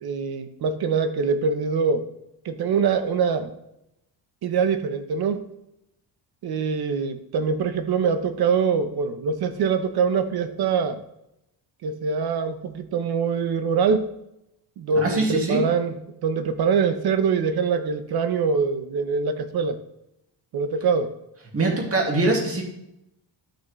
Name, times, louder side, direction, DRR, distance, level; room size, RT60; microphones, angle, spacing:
voice 1, 0.0-2.1 2.4-3.5 4.4-5.5 6.4-11.0 11.8-14.2 14.8-15.9 16.2-19.8 20.5-21.1, right 5 dB, 55° right, 9 dB, 0.9 m, -24 dB
voice 2, 15.0-15.6 21.5-22.6, right 2 dB, 30° right, -1 dB, 2.2 m, -23 dB
13.0 x 6.1 x 3.2 m, 0.83 s
cardioid pair, 155°, 46 cm